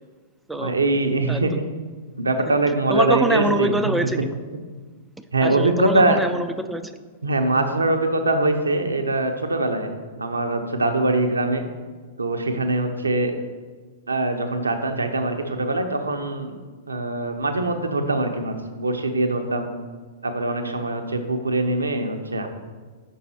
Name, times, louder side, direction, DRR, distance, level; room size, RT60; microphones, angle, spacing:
voice 1, 0.6-1.5 2.2-3.9 5.3-6.2 7.2-11.6 12.2-13.3 14.1-16.6 16.9-19.7 20.2-22.5, right 2 dB, 90° right, 5 dB, 0.7 m, -23 dB
voice 2, 2.9-4.3 5.4-6.9, right 1 dB, 5° right, 7 dB, 0.3 m, -24 dB
5.5 x 5.3 x 4.3 m, 1.4 s
hypercardioid pair, 105°, 0 cm